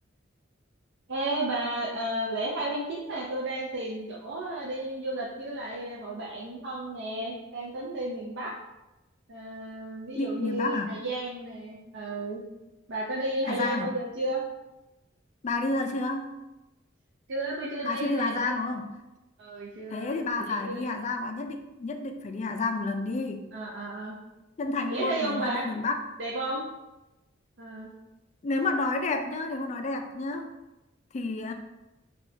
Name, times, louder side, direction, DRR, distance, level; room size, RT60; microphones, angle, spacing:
voice 1, 1.1-8.5 9.3-12.4 12.9-14.4 17.3-18.6 19.4-20.8 23.5-24.1 24.9-25.6 26.2-26.6 27.6-27.9, right 1 dB, 65° right, -4 dB, 0.5 m, -33 dB
voice 2, 10.1-11.0 13.5-13.9 15.4-16.3 17.8-18.9 19.9-23.4 24.6-26.0 28.4-30.5 31.1-31.5, left 3 dB, 35° left, 6 dB, 0.3 m, -30 dB
4.8 x 2.3 x 2.6 m, 0.99 s
head